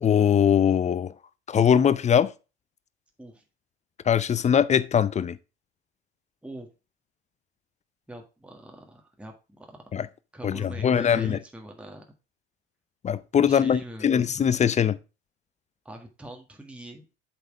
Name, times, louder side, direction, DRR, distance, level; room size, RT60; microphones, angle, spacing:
voice 1, 0.0-1.1 1.5-2.3 4.1-5.4 9.9-10.1 10.4-11.4 13.0-15.0, left 8 dB, 20° left, 0.5 m, -21 dB
voice 2, 8.1-9.8 10.3-12.0 13.4-14.1 15.9-17.1, right 1 dB, 5° right, 1.7 m, -42 dB
7.8 x 4.4 x 4.9 m
hypercardioid pair, 70°, 34 cm